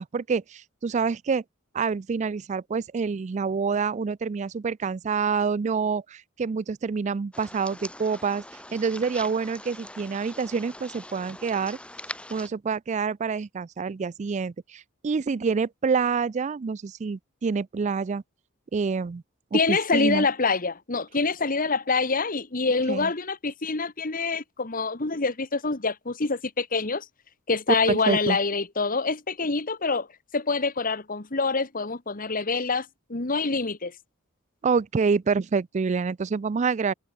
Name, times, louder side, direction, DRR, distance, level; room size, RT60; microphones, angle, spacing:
voice 1, 0.0-1.4 1.7-8.4 8.7-11.8 12.3-18.2 18.7-19.2 19.5-20.3 22.9-23.1 27.9-28.4 34.6-36.9, right 5 dB, 35° right, 0.4 m, -27 dB
sound 1, 7.3-12.5, left 1 dB, 5° left, 7.0 m, -42 dB
voice 2, 19.5-27.0 27.5-30.1 30.3-33.9, left 4 dB, 45° left, 1.6 m, -26 dB
head